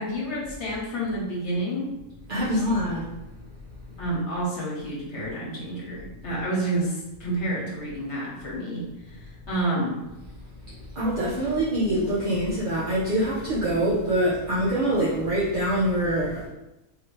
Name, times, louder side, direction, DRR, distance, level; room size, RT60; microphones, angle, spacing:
voice 1, 0.0-1.9 2.3-2.6 4.0-8.9 9.1-10.0, right 1 dB, 50° left, -5 dB, 1.5 m, -29 dB
voice 2, 2.3-3.1 10.7-16.5, right 1 dB, 45° right, -9 dB, 0.8 m, -25 dB
4.0 x 2.8 x 3.2 m, 0.96 s
omnidirectional pair, 1.5 m